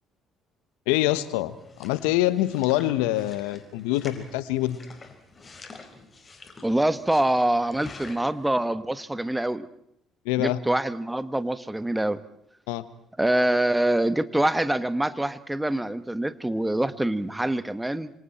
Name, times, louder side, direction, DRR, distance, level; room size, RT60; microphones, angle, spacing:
voice 1, 0.9-4.8 10.2-10.6 12.7-12.9, left 15 dB, 75° left, 16 dB, 1.1 m, -25 dB
sound 1, 1.2-8.5, left 3 dB, 30° left, 4.8 m, -47 dB
voice 2, 6.6-9.7 10.4-12.2 13.2-18.1, right 1 dB, 10° right, 13 dB, 1.6 m, -25 dB
26.5 x 26.5 x 4.4 m, 0.73 s
hypercardioid pair, 55°, 0 cm